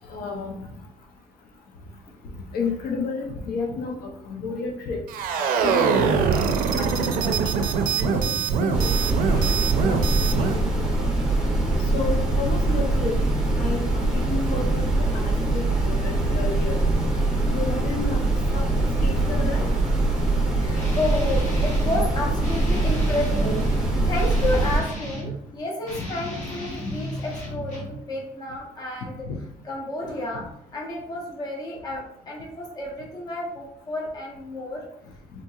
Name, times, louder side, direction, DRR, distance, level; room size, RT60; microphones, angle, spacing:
voice 1, 0.1-0.5 2.5-3.9 4.3-5.0 5.6-6.2 6.7-8.2 8.6-9.0 9.5-10.0 10.4-10.6 11.0-11.1 11.9-13.1 13.6-14.9 15.1-16.8 17.5-18.2 18.5-19.7 26.0-26.1 29.2-29.4, left 4 dB, 75° left, 1 dB, 0.6 m, -31 dB
sound 1, 5.1-10.6, right 5 dB, 65° right, 0.4 m, -23 dB
sound 2, 8.7-24.8, right 2 dB, 5° right, 0.8 m, -23 dB
voice 2, 9.2-9.5 12.8-12.9 20.5-29.2 29.6-30.5 30.7-34.8, left 1 dB, 25° left, -1 dB, 0.7 m, -31 dB
Guitar, 20.7-22.0 22.4-25.4 25.8-28.0, left 1 dB, 50° left, 1.1 m, -35 dB
3.8 x 2.8 x 2.3 m, 0.74 s
cardioid pair, 165°, 16 cm